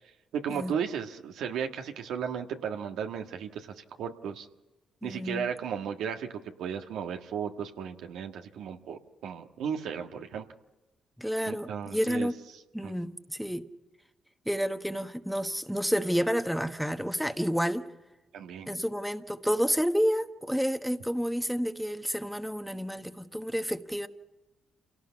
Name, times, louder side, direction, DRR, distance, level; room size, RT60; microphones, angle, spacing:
voice 1, 0.3-4.5 5.0-10.4 11.5-12.3 12.8-12.9 18.3-18.7, right 7 dB, 80° right, 1.6 m, -35 dB
voice 2, 5.0-5.5 11.2-12.4 12.7-13.7 14.4-17.8 18.7-24.1, equal, ahead, 1.3 m, -30 dB
27.5 x 18.0 x 5.8 m
supercardioid pair, 65°, 0 cm